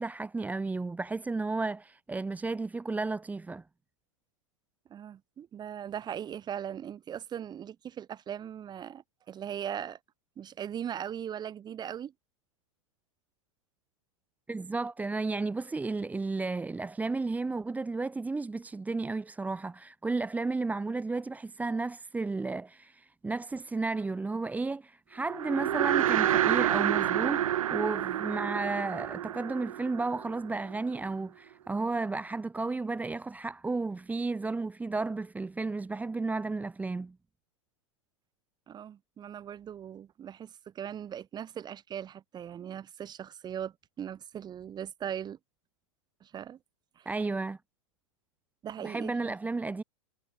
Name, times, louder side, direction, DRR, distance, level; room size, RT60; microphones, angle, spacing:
voice 1, 0.0-3.6 14.5-37.1 47.0-47.6 48.8-49.8, right 3 dB, 10° right, 1.7 m, -33 dB
voice 2, 4.9-10.0 10.4-12.1 38.7-45.4 46.2-46.6 47.0-47.1 48.6-49.3, right 9 dB, 25° right, 4.3 m, -39 dB
sound 1, 25.3-30.7, right 11 dB, 80° right, 0.6 m, -28 dB
hypercardioid pair, 120°, 18 cm